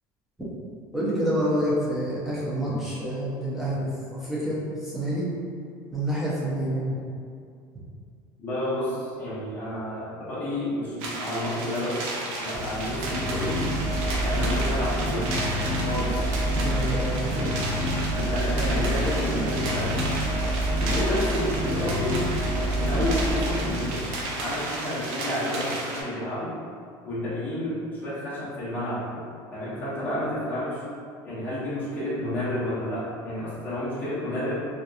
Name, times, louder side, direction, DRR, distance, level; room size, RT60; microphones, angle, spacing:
voice 1, 0.9-5.3 5.9-7.0 16.6-17.3, equal, 5° right, -9 dB, 0.5 m, -28 dB
voice 2, 8.4-12.1 12.4-13.6 14.2-15.3 15.9-16.3 17.2-17.5 18.1-19.9 20.8-22.2 22.7-24.1 24.4-26.5 27.0-30.8 31.2-34.7, left 1 dB, 20° left, -11 dB, 0.8 m, -30 dB
sound 1, 11.0-26.0, right 2 dB, 75° right, 0.5 m, -33 dB
sound 2, 12.6-24.4, equal, 55° left, 0.6 m, -27 dB
2.8 x 2.3 x 2.4 m, 2.3 s
cardioid pair, 180°, 10 cm